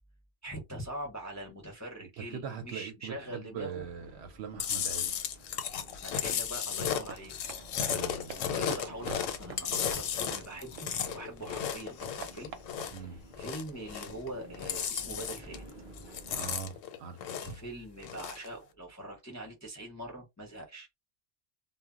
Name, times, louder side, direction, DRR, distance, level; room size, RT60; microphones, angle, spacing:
voice 1, 0.4-3.8 6.0-7.3 8.3-12.5 12.8-15.6 17.4-20.9, right 1 dB, 20° left, 0.5 m, -43 dB
voice 2, 2.2-5.3 7.9-8.3 12.9-13.2 16.3-17.6, right 7 dB, 65° right, 0.8 m, -42 dB
sound 1, 3.8-16.8, right 1 dB, 25° right, 0.9 m, -52 dB
Chewing mastication, 4.6-13.0 13.3-14.3 14.5-15.7 16.0-17.6 18.0-18.5, left 8 dB, 85° left, 0.9 m, -34 dB
Run, 6.9-11.4 11.7-13.6, right 6 dB, 90° right, 0.9 m, -48 dB
2.1 x 2.0 x 3.5 m
omnidirectional pair, 1.3 m